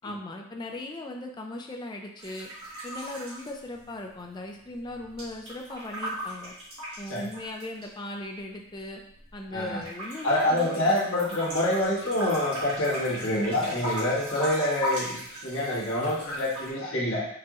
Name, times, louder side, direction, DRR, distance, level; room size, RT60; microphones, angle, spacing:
voice 1, 0.0-2.5 2.8-6.5 7.0-9.0 9.3-11.1, left 1 dB, 20° left, 2 dB, 0.4 m, -38 dB
sound 1, 2.2-4.2 4.5-7.8 8.5-9.5 9.8-16.7, equal, 85° right, 1.5 m, -37 dB
voice 2, 9.5-9.8 10.2-17.3, left 1 dB, 75° left, -7 dB, 1.5 m, -26 dB
4.7 x 2.9 x 2.4 m, 0.72 s
head